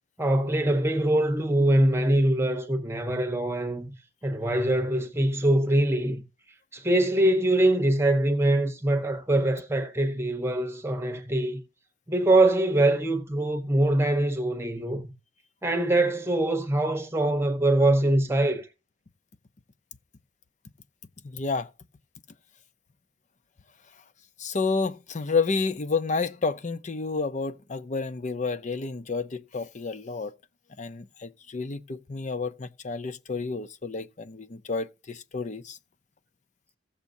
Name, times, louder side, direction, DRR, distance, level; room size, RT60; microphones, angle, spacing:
voice 1, 0.2-3.9 4.2-6.2 6.7-11.6 12.1-15.1 15.6-18.7, right 1 dB, 15° right, 1.0 m, -23 dB
voice 2, 21.2-21.7 24.4-30.3 30.8-35.8, left 4 dB, 45° left, 0.6 m, -30 dB
15.5 x 7.1 x 2.7 m
head